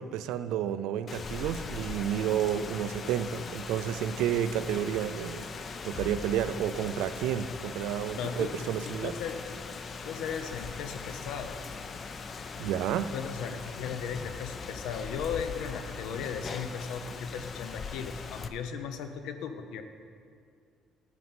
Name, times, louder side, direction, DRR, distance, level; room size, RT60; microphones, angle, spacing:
voice 1, 0.0-5.5 5.8-9.2 12.6-13.1, right 10 dB, 90° right, 12 dB, 0.4 m, -31 dB
Rain, 1.1-18.5, left 5 dB, 30° left, 0.4 m, -40 dB
voice 2, 8.2-8.5 9.0-9.4 10.0-11.6 13.1-19.8, left 7 dB, 85° left, 8 dB, 0.7 m, -36 dB
9.8 x 5.4 x 7.7 m, 2.3 s
cardioid pair, 160°, 0 cm